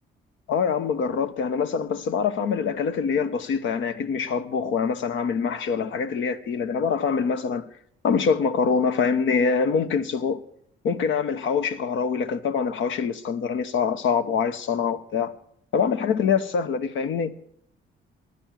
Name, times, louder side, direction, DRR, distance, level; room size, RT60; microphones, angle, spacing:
voice 1, 0.5-7.7 8.0-10.4 10.8-15.3 15.7-17.3, left 6 dB, 75° left, 1.0 m, -24 dB
14.0 x 10.5 x 7.5 m
cardioid pair, 90°, 20 cm